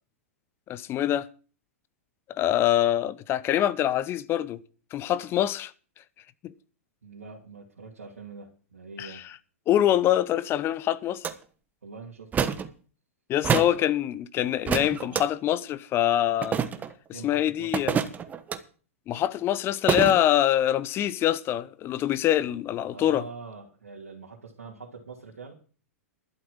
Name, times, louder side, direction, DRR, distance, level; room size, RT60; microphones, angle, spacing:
voice 1, 0.7-1.3 2.3-4.6 4.9-5.7 6.4-6.5 9.0-9.3 9.7-11.3 13.3-16.6 17.2-18.0 19.1-23.2, left 12 dB, 30° left, 0.8 m, -25 dB
voice 2, 7.0-9.3 11.8-12.3 17.1-18.0 22.9-25.5, right 4 dB, 80° right, 2.7 m, -44 dB
sound 1, 11.2-11.3 12.3-12.7 13.4-13.8 14.7-15.2 16.4-16.9 17.7-18.6 19.9-20.2, right 7 dB, 20° right, 1.2 m, -26 dB
12.0 x 7.8 x 7.3 m
figure-of-eight pair, 100°, 8 cm